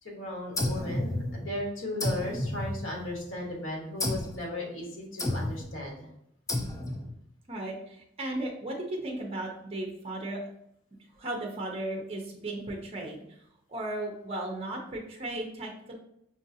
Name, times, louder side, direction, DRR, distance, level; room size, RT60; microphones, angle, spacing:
voice 1, 0.0-6.1, left 1 dB, 75° left, -1 dB, 1.2 m, -36 dB
sound 1, 0.6-1.6 2.0-3.3 4.0-4.4 5.2-5.7 6.5-7.1, left 1 dB, 15° left, 0.4 m, -32 dB
voice 2, 7.5-10.4 11.1-13.2 13.7-15.9, right 1 dB, 30° right, 1 dB, 0.6 m, -35 dB
5.3 x 2.5 x 2.7 m, 0.74 s
head